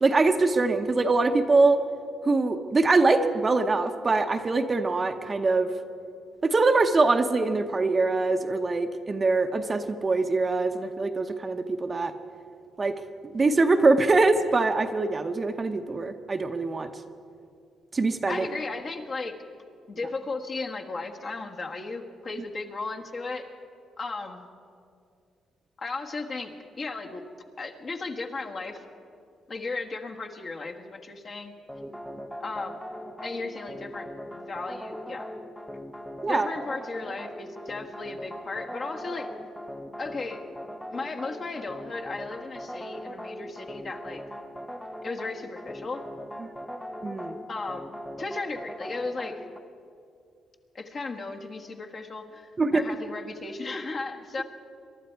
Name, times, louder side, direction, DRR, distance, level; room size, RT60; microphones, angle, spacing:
voice 1, 0.0-1.8 2.2-5.7 6.4-12.1 12.8-13.0 13.2-16.9 17.9-18.5 36.2-36.5 46.4-46.5 47.0-47.4 52.6-52.8, right 3 dB, 30° right, 7 dB, 0.8 m, -23 dB
voice 2, 18.3-19.3 19.9-23.4 24.0-24.5 25.8-26.5 26.8-27.2 27.6-28.8 29.5-31.5 32.4-32.8 33.2-35.3 35.7-35.8 36.3-39.3 40.0-40.4 40.9-44.2 45.0-46.0 47.5-49.4 50.7-54.4, left 3 dB, 45° left, 2 dB, 1.4 m, -35 dB
sound 1, 31.7-49.6, equal, 5° left, 0.7 m, -40 dB
22.5 x 12.0 x 4.6 m, 2.4 s
cardioid pair, 90°, 0 cm